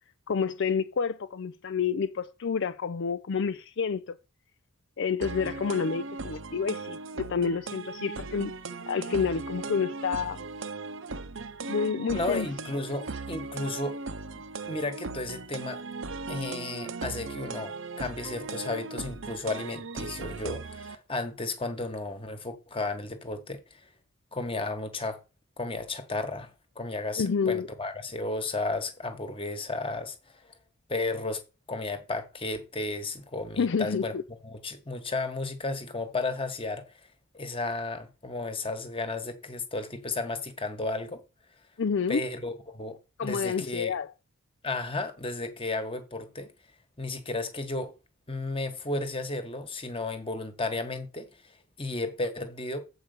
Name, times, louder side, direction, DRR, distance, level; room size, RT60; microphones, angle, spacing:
voice 1, 0.3-4.2 5.0-8.5 8.9-10.5 11.7-12.5 27.2-27.7 33.6-34.2 41.8-42.2 43.2-44.1, left 6 dB, 55° left, 0.4 m, -29 dB
sound 1, 5.2-20.9, right 4 dB, 55° right, 0.7 m, -38 dB
voice 2, 12.1-14.0 14.6-15.8 16.3-23.9 24.3-25.2 25.6-30.5 30.9-31.4 31.7-36.9 37.3-41.2 42.1-43.9 44.6-46.5 47.0-47.9 48.3-52.8, left 2 dB, 25° left, 1.4 m, -33 dB
8.0 x 4.9 x 6.6 m
head